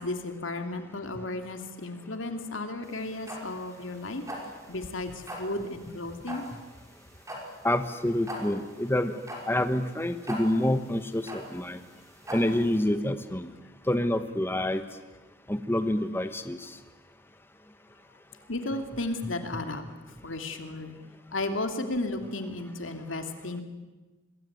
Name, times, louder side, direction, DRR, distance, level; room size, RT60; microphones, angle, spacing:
voice 1, 0.0-4.2 4.7-6.5 18.4-19.8 20.2-21.0 21.3-23.6, left 2 dB, 80° left, 6 dB, 2.7 m, -34 dB
sound 1, 2.8-12.8, right 1 dB, 15° right, 5.7 m, -41 dB
voice 2, 7.6-9.2 9.5-11.8 12.3-13.5 13.9-14.8 15.5-16.7, left 1 dB, 10° left, 9 dB, 1.1 m, -27 dB
25.5 x 21.0 x 9.5 m, 1.2 s
head